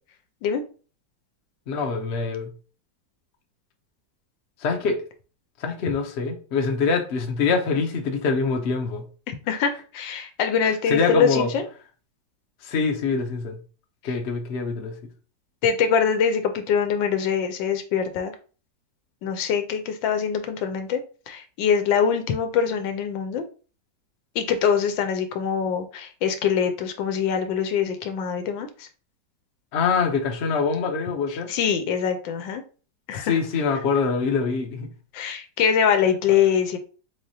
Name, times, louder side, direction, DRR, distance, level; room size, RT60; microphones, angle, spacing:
voice 1, 1.7-2.5 4.6-5.0 5.6-9.0 10.6-11.5 12.6-13.6 14.0-14.9 29.7-31.5 33.2-34.9, left 5 dB, 55° left, 0.7 m, -24 dB
voice 2, 9.3-11.6 14.0-14.1 15.6-18.3 19.2-21.0 21.3-23.4 24.3-28.9 31.3-32.6 33.1-33.4 35.1-36.8, left 7 dB, 85° left, 1.4 m, -24 dB
4.0 x 3.3 x 2.7 m
omnidirectional pair, 2.0 m